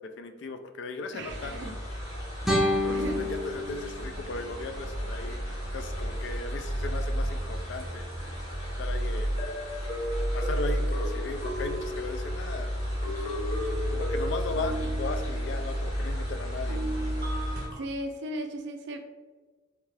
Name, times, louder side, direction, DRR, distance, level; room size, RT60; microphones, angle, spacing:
voice 1, 0.0-1.6 2.8-5.4 5.7-8.0 8.8-9.4 10.3-12.7 13.9-16.8, left 3 dB, 55° left, 7 dB, 0.3 m, -37 dB
voice 2, 1.1-1.7 2.5-3.2 17.7-19.0, right 1 dB, 55° right, 5 dB, 0.4 m, -36 dB
sound 1, 1.3-17.7, equal, 75° left, 1.5 m, -32 dB
sound 2, 2.4-5.5, left 1 dB, ahead, 0.5 m, -30 dB
sound 3, 8.2-8.3 9.4-12.5 13.0-15.6 16.7-17.7, equal, 40° left, 0.9 m, -36 dB
3.5 x 2.7 x 3.2 m, 1.3 s
head